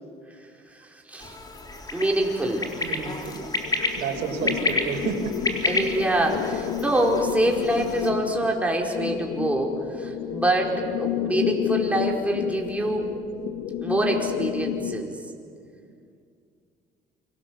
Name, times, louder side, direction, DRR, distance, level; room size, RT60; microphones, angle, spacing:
sound 1, 1.2-8.1, left 2 dB, 25° left, 3.7 m, -31 dB
voice 1, 1.9-2.7 5.6-13.1 13.8-15.2, right 1 dB, 10° right, 0 dB, 4.8 m, -25 dB
voice 2, 2.8-5.7, right 5 dB, 90° right, 5 dB, 4.2 m, -31 dB
sound 2, 3.5-15.0, left 10 dB, 80° left, 1.7 m, -31 dB
29.0 x 24.5 x 7.7 m, 2.3 s
cardioid pair, 110°, 17 cm